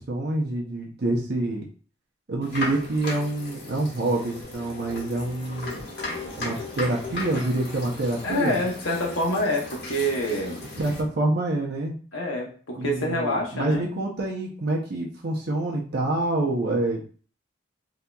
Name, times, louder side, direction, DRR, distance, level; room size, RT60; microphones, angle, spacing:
voice 1, 0.0-1.6 2.3-5.8 6.4-8.6 10.8-11.9 12.8-17.0, right 2 dB, 55° right, -1 dB, 0.6 m, -27 dB
sound 1, 2.4-11.0, left 2 dB, 55° left, 1.2 m, -36 dB
voice 2, 8.2-10.6 12.1-13.9, left 1 dB, 85° left, -1 dB, 0.8 m, -26 dB
3.9 x 2.8 x 2.3 m, 0.41 s
head